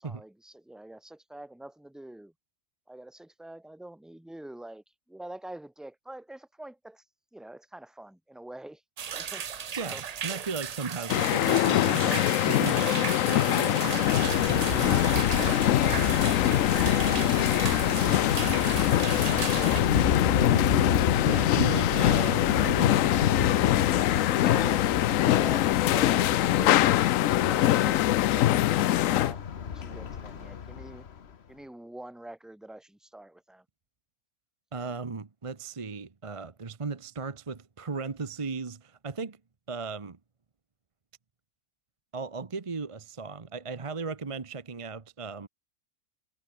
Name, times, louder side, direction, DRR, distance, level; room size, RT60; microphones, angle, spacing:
voice 1, 0.0-2.3 2.9-7.0 7.3-8.8 9.2-10.0 15.4-16.9 24.3-26.9 27.3-29.4 29.7-31.1 31.5-33.6, right 1 dB, ahead, 1.2 m, -44 dB
sound 1, 9.0-19.8, right 7 dB, 75° right, 0.3 m, -36 dB
voice 2, 9.8-15.1 18.1-20.9 21.2-23.2 34.7-39.4 39.7-40.2 42.1-45.5, right 4 dB, 25° right, 0.8 m, -37 dB
sound 2, 11.1-29.3, left 14 dB, 70° left, 0.9 m, -24 dB
Thunder, 13.8-31.2, left 7 dB, 50° left, 1.2 m, -30 dB
omnidirectional pair, 1.5 m